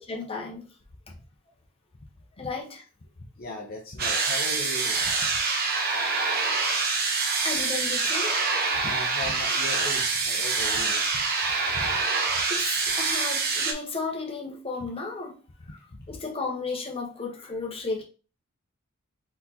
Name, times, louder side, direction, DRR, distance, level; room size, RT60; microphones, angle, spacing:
voice 1, 0.1-0.6 2.4-2.8 7.4-8.4 12.5-15.4 15.7-15.8 16.1-18.0, left 3 dB, 25° left, 1.1 m, -34 dB
voice 2, 3.4-5.4 8.8-11.9 16.1-16.2, left 1 dB, 45° left, 0.8 m, -38 dB
sound 1, 4.0-13.7, right 4 dB, 45° right, 1.0 m, -26 dB
4.2 x 4.1 x 2.9 m
head